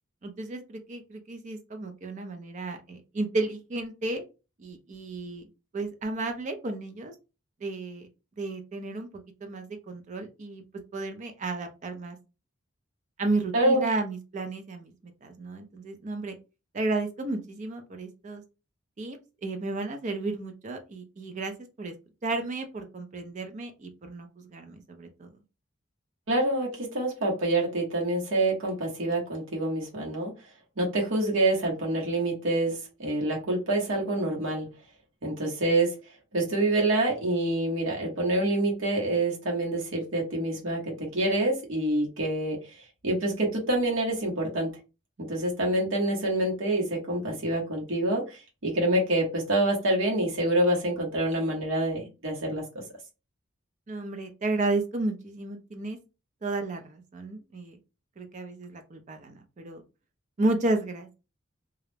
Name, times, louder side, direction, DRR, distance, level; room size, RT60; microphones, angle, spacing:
voice 1, 0.2-4.2 4.6-5.4 5.7-7.1 7.6-8.1 8.4-9.1 9.4-10.6 10.9-12.2 13.2-14.9 15.2-16.3 16.7-18.4 19.0-21.9 22.2-25.3 53.9-56.0 56.4-57.8 58.2-59.8 60.4-61.1, right 2 dB, 35° right, 6 dB, 0.4 m, -32 dB
voice 2, 13.5-13.9 26.3-30.3 30.8-34.7 35.2-36.0 36.3-44.7 45.3-52.6, right 1 dB, 70° right, -1 dB, 1.0 m, -27 dB
2.3 x 2.0 x 3.1 m, 0.29 s
head